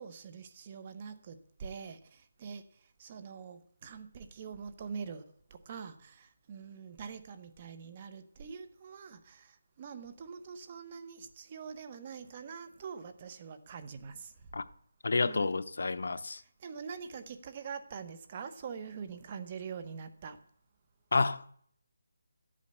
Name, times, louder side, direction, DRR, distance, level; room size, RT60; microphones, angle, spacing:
voice 1, 0.0-5.2 5.5-14.5 15.2-15.5 16.3-20.4, right 6 dB, 25° right, 1.0 m, -44 dB
voice 2, 15.0-16.4 21.1-21.5, left 3 dB, 65° left, 0.8 m, -30 dB
12.5 x 8.6 x 6.8 m
figure-of-eight pair, 170°, 0 cm